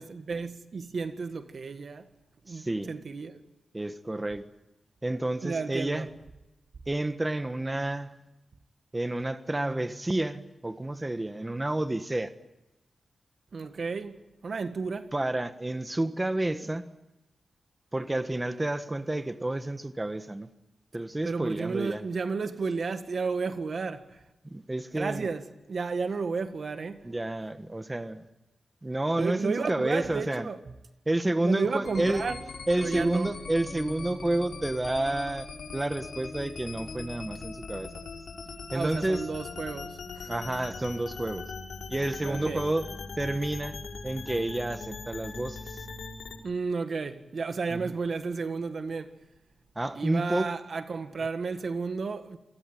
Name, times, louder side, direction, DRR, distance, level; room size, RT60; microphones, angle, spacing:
voice 1, 0.0-2.1 2.5-3.4 5.4-6.1 13.5-15.1 21.2-24.2 25.0-27.1 29.2-30.6 31.4-32.4 32.7-33.3 38.7-40.3 42.2-42.6 46.4-49.1 50.0-52.4, right 4 dB, 60° right, 1.7 m, -32 dB
voice 2, 2.5-2.9 3.7-4.5 5.0-6.1 6.9-8.2 8.9-12.3 15.1-16.9 17.9-20.5 20.9-22.1 24.4-25.3 27.0-28.2 28.8-30.5 31.1-32.3 32.7-35.5 35.7-37.9 38.7-39.2 40.3-41.5 41.9-42.9 43.2-43.8 44.0-45.9 47.7-47.9 49.7-50.6, right 1 dB, 20° right, 1.4 m, -30 dB
sound 1, 31.8-46.4, left 4 dB, 75° left, 5.4 m, -41 dB
27.5 x 19.5 x 9.2 m
cardioid pair, 65°, 0 cm